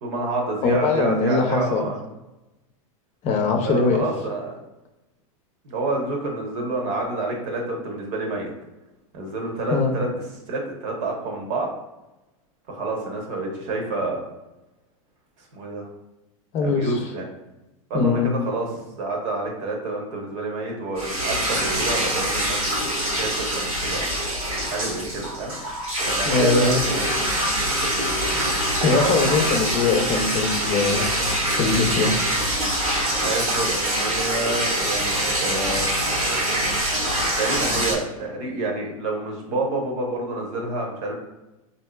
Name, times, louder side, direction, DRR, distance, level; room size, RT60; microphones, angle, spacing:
voice 1, 0.0-2.0 3.6-4.6 5.6-8.5 9.1-10.1 10.5-11.7 12.7-14.2 15.4-15.9 16.6-17.3 17.9-24.1 24.7-25.6 26.1-26.7 29.0-29.5 33.2-35.1 35.4-35.8 37.4-41.2, right 2 dB, 65° right, 1 dB, 1.0 m, -28 dB
voice 2, 0.6-1.9 3.2-4.0 9.7-9.9 16.5-17.0 17.9-18.3 26.3-26.8 28.8-31.1 31.5-32.2, left 4 dB, 40° left, 3 dB, 0.6 m, -21 dB
sound 1, 21.0-37.9, right 1 dB, 90° right, 1.3 m, -24 dB
4.3 x 2.7 x 2.3 m, 1.0 s
hypercardioid pair, 105°, 18 cm